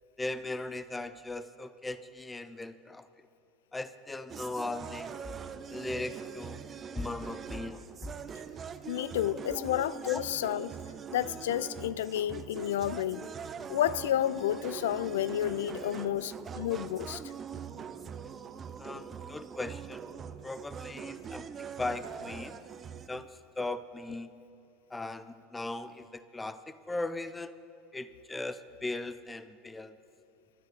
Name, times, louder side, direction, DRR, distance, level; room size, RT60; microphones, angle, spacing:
voice 1, 0.2-3.1 3.7-5.2 5.7-6.6 6.9-7.8 9.5-9.6 10.0-10.2 18.8-20.1 20.4-22.6 23.1-24.3 24.9-27.5 27.9-30.0, left 2 dB, 15° left, 14 dB, 0.7 m, -38 dB
sound 1, 4.3-23.1, right 7 dB, 30° right, 0.8 m, -43 dB
voice 2, 8.9-10.7 11.1-13.3 13.7-17.2 18.9-19.0, left 11 dB, 70° left, 19 dB, 0.4 m, -31 dB
26.0 x 12.0 x 4.0 m, 2.7 s
figure-of-eight pair, 75°, 0 cm